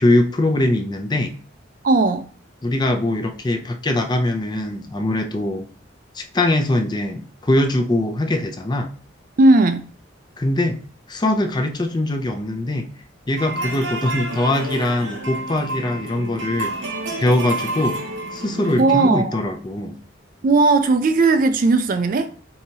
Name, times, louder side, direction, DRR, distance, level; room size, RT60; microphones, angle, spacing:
voice 1, 0.0-1.3 2.6-5.7 6.1-8.9 10.4-10.8 11.1-12.9 13.3-16.9 17.2-18.0 18.3-20.0, left 1 dB, 20° left, 0.4 m, -22 dB
voice 2, 1.8-2.2 9.4-9.8 18.8-19.4 20.4-22.4, right 3 dB, 45° right, 0.4 m, -16 dB
sound 1, 13.4-19.1, right 1 dB, 80° right, 0.8 m, -29 dB
4.7 x 2.8 x 2.7 m
head